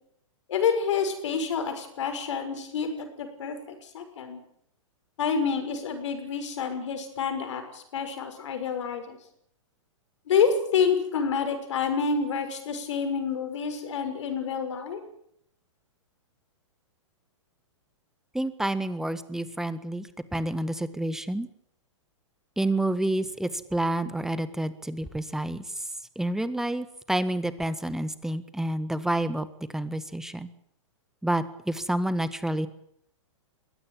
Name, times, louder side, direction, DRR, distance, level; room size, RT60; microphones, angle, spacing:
voice 1, 0.5-4.4 5.2-9.2 10.3-15.0, left 6 dB, 70° left, 7 dB, 6.4 m, -28 dB
voice 2, 18.3-21.5 22.6-25.8 26.1-29.5 29.7-30.5 31.2-32.7, right 1 dB, 5° right, 13 dB, 1.6 m, -29 dB
22.0 x 17.0 x 9.0 m, 0.71 s
hypercardioid pair, 120°, 16 cm